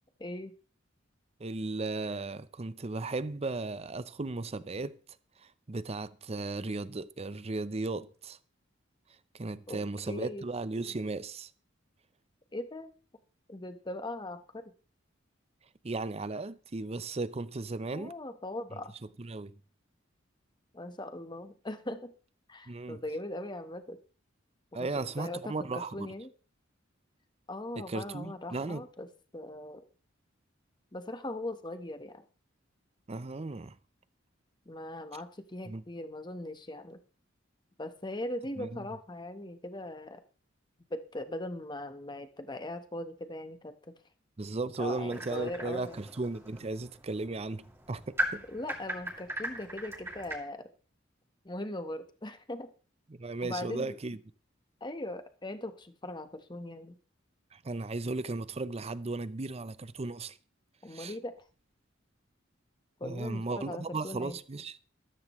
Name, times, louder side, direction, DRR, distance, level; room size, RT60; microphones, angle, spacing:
voice 1, 0.2-0.5 9.7-9.8 10.1-10.4 12.5-12.9 13.5-14.6 17.9-18.9 20.7-22.1 22.5-24.0 24.7-26.3 27.5-29.1 29.3-29.8 30.9-32.2 34.7-37.0 37.8-40.2 40.9-43.9 44.8-46.0 48.5-50.7 51.4-52.7 53.4-54.0 54.8-57.0 60.8-61.3 63.0-64.4, left 1 dB, 25° left, 1.2 m, -40 dB
voice 2, 1.4-5.0 5.7-8.4 9.3-11.5 15.8-18.1 19.2-19.5 22.7-23.0 24.7-26.1 27.8-28.8 33.1-33.8 35.7-35.8 38.6-38.8 44.4-48.4 53.1-54.2 57.5-60.4 60.9-61.1 63.0-64.8, right 3 dB, 30° right, 0.6 m, -36 dB
sound 1, 45.1-50.4, right 1 dB, 15° right, 2.5 m, -39 dB
13.5 x 13.5 x 3.1 m
head